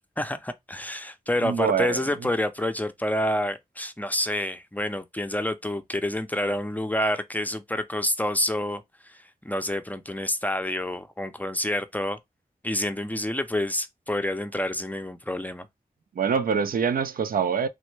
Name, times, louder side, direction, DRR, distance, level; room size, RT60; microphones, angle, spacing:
voice 1, 0.2-12.2 12.6-15.7, left 1 dB, 10° left, 0.4 m, -28 dB
voice 2, 1.4-2.0 16.2-17.7, right 6 dB, 75° right, 0.4 m, -24 dB
3.3 x 2.1 x 3.1 m
cardioid pair, 60°, 15 cm